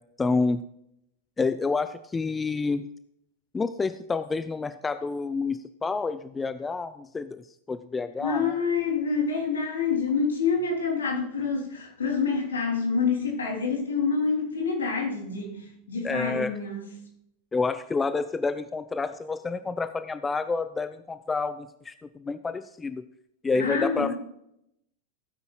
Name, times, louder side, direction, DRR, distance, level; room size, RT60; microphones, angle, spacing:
voice 1, 0.2-0.6 1.4-2.9 3.5-8.6 16.0-16.5 17.5-23.0 23.4-24.2, left 4 dB, 15° left, 0.5 m, -29 dB
voice 2, 8.2-15.6 15.9-16.8 23.5-24.2, left 5 dB, 70° left, 3.4 m, -27 dB
17.0 x 9.5 x 2.4 m
figure-of-eight pair, 90°, 0 cm